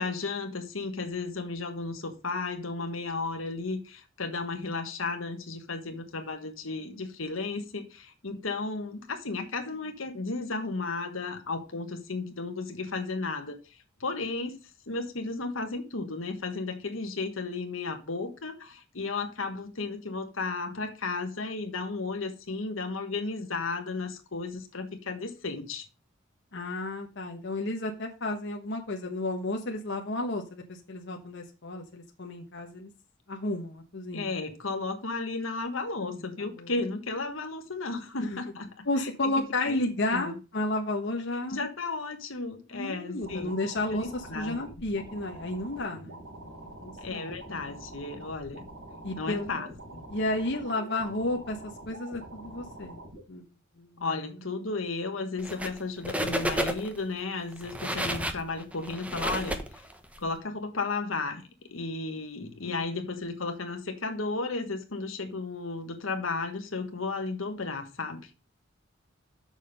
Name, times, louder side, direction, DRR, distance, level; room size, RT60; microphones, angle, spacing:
voice 1, 0.0-14.5 14.9-25.8 34.1-39.8 40.1-40.3 41.5-43.5 43.9-44.6 47.0-48.6 49.2-50.0 54.0-59.8 60.2-68.3, left 3 dB, 80° left, 1.5 m, -34 dB
voice 2, 26.5-32.9 33.3-34.3 36.0-36.7 38.2-38.4 38.8-41.7 42.7-47.3 49.0-49.5 50.1-53.0 53.3-53.4 53.8-54.4 62.7-62.9, left 2 dB, 60° left, 1.2 m, -32 dB
sound 1, 43.2-53.2, right 1 dB, 80° right, 3.7 m, -45 dB
sound 2, 55.4-55.8 56.0-57.0 57.5-60.2, equal, 5° right, 0.9 m, -31 dB
7.2 x 6.5 x 5.3 m
head